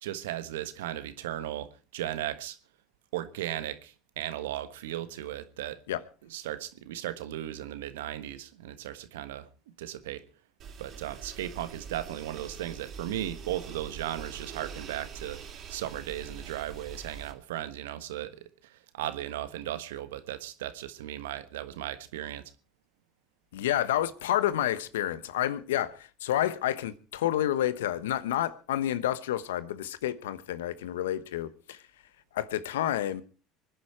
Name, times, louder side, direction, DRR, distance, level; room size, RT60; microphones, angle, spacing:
voice 1, 0.0-2.6 3.1-5.8 6.2-9.5 9.8-10.2 10.8-15.4 15.7-18.4 18.7-22.5, right 12 dB, 80° right, 1.3 m, -36 dB
sound 1, 10.6-17.3, right 6 dB, 50° right, 3.7 m, -44 dB
voice 2, 23.5-31.8 32.3-33.2, left 12 dB, 80° left, 1.0 m, -29 dB
24.5 x 10.0 x 4.4 m
hypercardioid pair, 75°, 0 cm